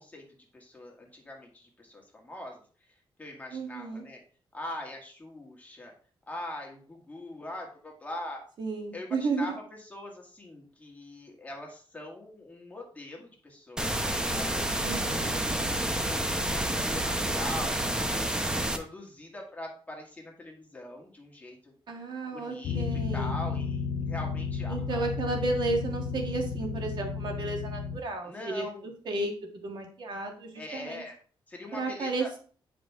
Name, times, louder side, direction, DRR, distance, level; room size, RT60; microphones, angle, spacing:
voice 1, 0.0-2.6 2.9-4.2 4.5-5.9 6.3-8.4 8.9-14.7 15.2-16.1 16.4-18.3 18.7-22.0 22.3-25.1 28.2-28.9 30.6-31.2 31.5-32.3, left 1 dB, 15° left, 0 dB, 2.0 m, -42 dB
voice 2, 3.5-4.0 8.6-9.5 14.8-15.4 21.9-23.4 24.7-28.6 29.0-29.3 29.6-31.0 31.7-32.4, right 3 dB, 55° right, 2 dB, 1.6 m, -33 dB
sound 1, 13.8-18.8, right 1 dB, 10° right, 0.8 m, -29 dB
sound 2, 22.6-28.0, left 5 dB, 65° left, 0.5 m, -33 dB
9.3 x 5.2 x 3.6 m, 0.41 s
wide cardioid pair, 140°, 9 cm